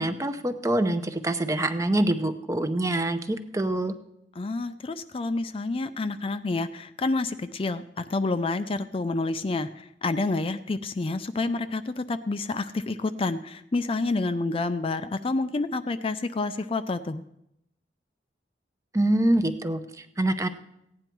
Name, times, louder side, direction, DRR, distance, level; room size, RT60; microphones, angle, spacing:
voice 1, 0.0-3.9 18.9-20.5, right 1 dB, 20° right, 9 dB, 0.7 m, -25 dB
voice 2, 4.4-9.7 10.0-17.2, left 3 dB, 30° left, 11 dB, 0.4 m, -28 dB
16.0 x 9.7 x 4.6 m, 0.81 s
head